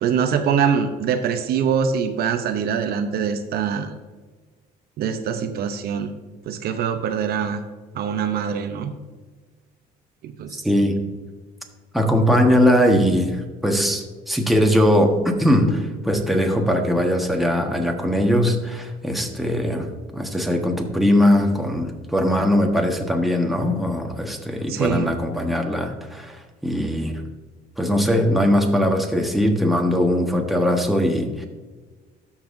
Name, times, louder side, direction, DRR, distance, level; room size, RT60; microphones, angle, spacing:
voice 1, 0.0-3.9 5.0-6.1 6.5-7.6 7.9-8.9 10.2-10.6 24.7-25.1, right 7 dB, 65° right, 7 dB, 0.7 m, -23 dB
voice 2, 10.6-11.0 11.9-13.3 13.6-19.9 20.1-27.1 27.8-31.4, equal, ahead, 1 dB, 1.3 m, -20 dB
13.0 x 5.6 x 2.6 m, 1.4 s
cardioid pair, 110°, 17 cm